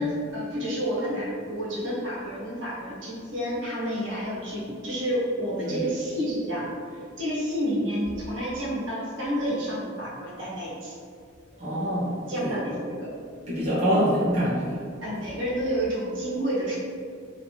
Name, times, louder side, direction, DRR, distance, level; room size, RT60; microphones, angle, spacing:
voice 1, 0.0-10.9 12.3-13.1 15.0-16.8, equal, 75° right, -7 dB, 1.1 m, -30 dB
voice 2, 11.6-12.6 13.5-14.8, equal, 35° right, -10 dB, 0.8 m, -25 dB
3.1 x 2.6 x 2.8 m, 2.2 s
head